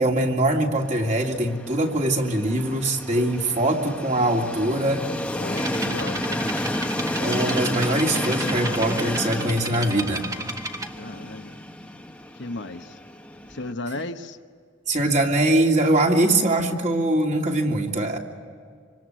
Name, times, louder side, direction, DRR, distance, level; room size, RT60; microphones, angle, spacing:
voice 1, 0.0-5.0 7.2-10.3 14.9-18.2, right 1 dB, 40° right, 1 dB, 2.8 m, -22 dB
Train, 0.8-13.7, left 1 dB, 5° left, 1.1 m, -31 dB
voice 2, 5.4-6.5 10.9-11.6 12.3-13.0 13.5-14.4, left 2 dB, 65° left, 7 dB, 1.2 m, -35 dB
sound 1, 5.6-10.9, right 2 dB, 20° right, 1.4 m, -34 dB
26.5 x 25.5 x 7.8 m, 2.1 s
head